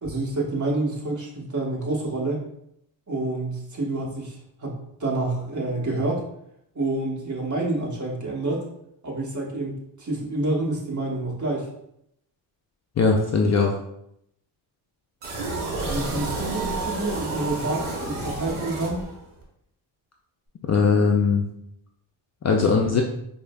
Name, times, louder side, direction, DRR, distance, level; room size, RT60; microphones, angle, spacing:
voice 1, 0.0-2.4 3.1-6.2 6.7-8.6 9.0-11.7 15.8-19.0, right 2 dB, 35° right, -2 dB, 1.2 m, -28 dB
voice 2, 13.0-13.8 20.7-21.4 22.4-23.0, left 4 dB, 35° left, 1 dB, 0.4 m, -19 dB
sound 1, 15.2-19.4, right 2 dB, 80° right, 0.9 m, -30 dB
4.8 x 2.1 x 2.2 m, 0.76 s
supercardioid pair, 55°, 49 cm